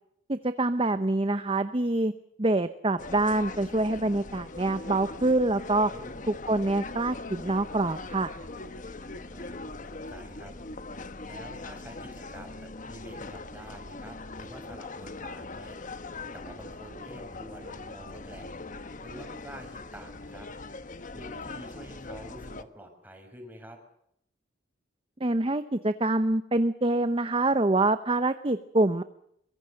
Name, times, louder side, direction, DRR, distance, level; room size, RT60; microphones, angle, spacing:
voice 1, 0.3-2.1 2.4-5.9 6.3-8.3 25.2-29.0, right 2 dB, 30° right, 11 dB, 0.8 m, -26 dB
sound 1, 3.0-22.6, left 3 dB, 45° left, 1.2 m, -41 dB
voice 2, 5.9-6.3 9.3-10.5 10.8-11.0 11.2-15.8 16.3-18.5 19.0-20.5 21.1-23.8, right 1 dB, 10° right, 4 dB, 5.9 m, -48 dB
23.5 x 22.5 x 6.5 m, 0.74 s
head